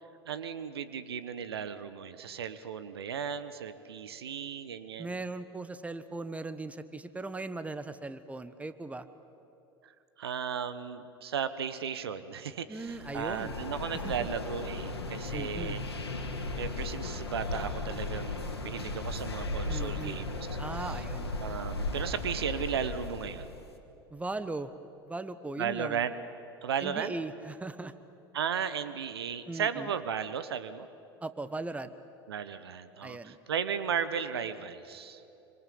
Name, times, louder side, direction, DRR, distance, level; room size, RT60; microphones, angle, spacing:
voice 1, 0.2-5.2 10.2-15.8 16.5-20.5 20.7-20.9 21.4-23.5 25.6-26.1 26.6-27.2 28.3-30.9 32.3-35.2, right 7 dB, 75° right, 13 dB, 1.2 m, -35 dB
voice 2, 5.0-9.1 12.7-13.5 14.0-14.3 15.3-15.8 19.7-20.2 20.6-21.3 24.1-24.7 25.0-26.0 26.8-27.9 29.5-29.9 31.2-31.9 33.0-33.4, right 2 dB, 10° right, 12 dB, 1.3 m, -38 dB
sound 1, 12.8-23.7, left 2 dB, 90° left, 2.3 m, -36 dB
26.5 x 25.5 x 8.7 m, 2.8 s
figure-of-eight pair, 75°, 13 cm